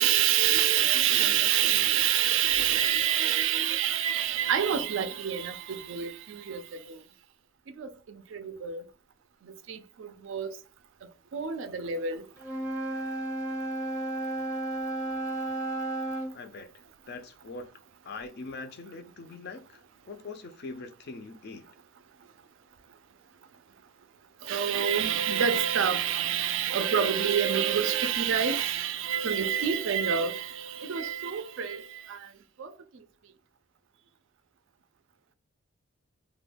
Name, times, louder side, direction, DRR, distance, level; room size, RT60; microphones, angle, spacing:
voice 1, 0.0-6.6 7.8-7.9 8.3-8.8 9.7-10.5 11.3-12.2 24.5-31.8 32.1-32.2 32.6-32.7, right 9 dB, 55° right, 0.3 m, -27 dB
voice 2, 0.8-1.9 2.5-2.9 16.3-16.7 17.1-17.7 18.0-19.8 20.1-21.7, left 3 dB, 45° left, 0.4 m, -42 dB
Wind instrument woodwind instrument, 12.4-16.3, right 1 dB, 5° right, 0.6 m, -33 dB
2.2 x 2.2 x 3.3 m
head